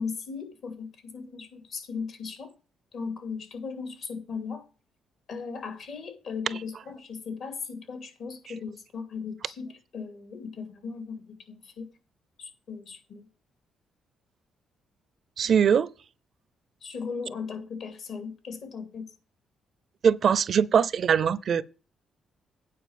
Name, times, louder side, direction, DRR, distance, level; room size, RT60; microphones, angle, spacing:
voice 1, 0.0-2.5 2.9-4.7 5.3-11.9 12.4-13.3 16.8-19.1, left 5 dB, 65° left, 2.7 m, -37 dB
voice 2, 15.4-15.9 20.0-21.6, right 7 dB, 55° right, 0.5 m, -22 dB
9.4 x 4.7 x 7.3 m
cardioid pair, 90°, 0 cm